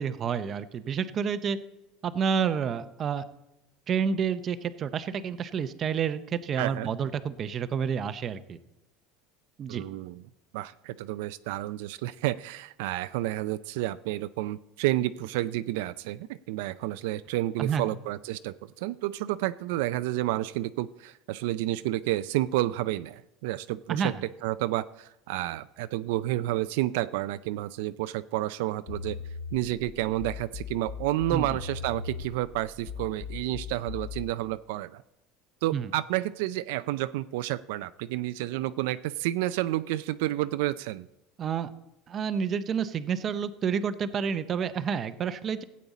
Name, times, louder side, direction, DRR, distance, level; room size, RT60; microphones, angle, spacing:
voice 1, 0.0-1.6 2.0-3.2 3.9-8.6 9.6-9.8 17.6-17.9 23.9-24.2 31.3-31.5 35.7-35.9 41.4-41.7 42.1-45.6, right 7 dB, 25° right, 11 dB, 0.5 m, -29 dB
voice 2, 6.6-6.9 9.7-10.2 10.5-24.1 24.4-29.2 29.5-35.0 35.6-41.1, right 15 dB, 75° right, 13 dB, 0.3 m, -30 dB
sound 1, 28.9-34.3, left 6 dB, 35° left, 1.2 m, -39 dB
16.0 x 8.5 x 4.1 m, 0.93 s
cardioid pair, 165°, 0 cm